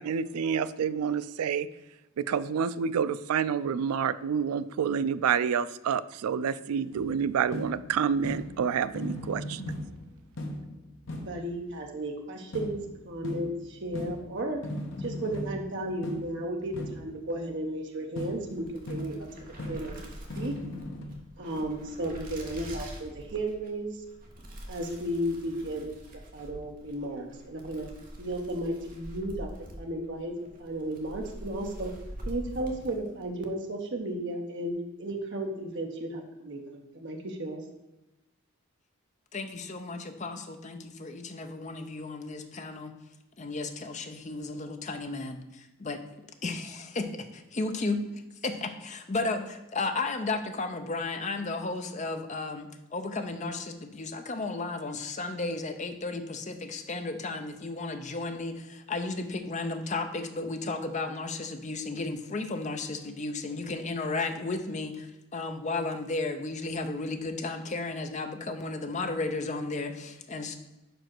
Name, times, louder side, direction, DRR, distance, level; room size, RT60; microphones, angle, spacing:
voice 1, 0.0-1.7 2.2-9.6, right 7 dB, 80° right, 15 dB, 0.3 m, -28 dB
sound 1, 6.9-11.7 12.5-17.4 18.2-21.1, left 1 dB, 55° left, 1.1 m, -39 dB
voice 2, 11.3-14.6 15.0-19.9 20.4-20.5 21.4-24.0 24.7-26.0 26.3-27.9 28.2-29.5 29.8-30.3 30.6-31.9 32.3-34.7 35.0-37.6, right 1 dB, 55° right, 2 dB, 0.8 m, -34 dB
sound 2, 18.4-33.3, equal, 40° right, 1.2 m, -45 dB
voice 3, 39.3-42.9 43.4-46.0 46.4-48.0 48.4-70.6, left 3 dB, 30° left, 7 dB, 0.6 m, -34 dB
5.1 x 4.9 x 6.0 m, 1.0 s
head